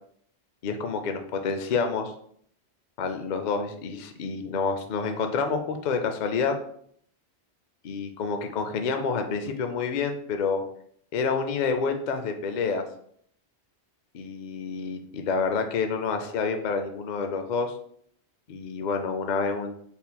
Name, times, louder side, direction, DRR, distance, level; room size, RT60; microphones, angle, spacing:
voice 1, 0.6-2.1 3.0-6.5 7.8-10.6 11.1-12.8 14.1-17.7 18.5-19.7, left 5 dB, 55° left, 6 dB, 0.5 m, -28 dB
4.3 x 3.5 x 2.2 m, 0.65 s
omnidirectional pair, 1.1 m